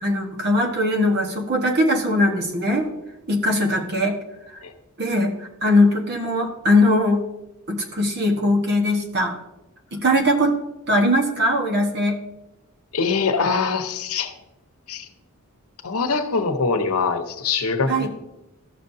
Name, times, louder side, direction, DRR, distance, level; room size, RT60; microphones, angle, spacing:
voice 1, 0.0-2.9 3.3-4.2 5.0-5.3 5.6-7.2 7.7-9.4 9.9-10.5 10.9-12.2 17.9-18.1, left 1 dB, 50° right, 2 dB, 1.3 m, -20 dB
voice 2, 12.9-14.3 14.9-15.1 15.8-18.1, left 4 dB, 90° left, 7 dB, 0.9 m, -23 dB
14.0 x 6.5 x 2.7 m, 0.96 s
head